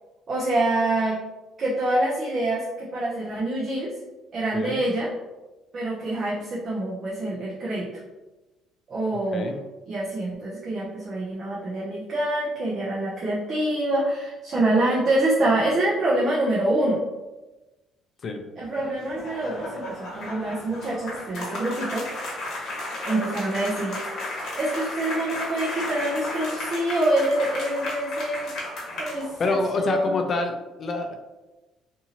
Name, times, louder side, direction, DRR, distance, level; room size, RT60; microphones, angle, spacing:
voice 1, 0.3-1.2 1.6-4.0 4.3-5.1 5.7-7.9 8.9-9.5 9.9-17.0 18.6-22.1 23.0-24.0 24.3-30.2, right 1 dB, 35° right, -6 dB, 0.6 m, -26 dB
sound 1, 18.6-29.6, left 1 dB, 60° left, 0.9 m, -34 dB
voice 2, 29.4-31.2, left 3 dB, 40° left, 5 dB, 0.4 m, -26 dB
2.7 x 2.6 x 2.8 m, 1.1 s
cardioid pair, 140°, 0 cm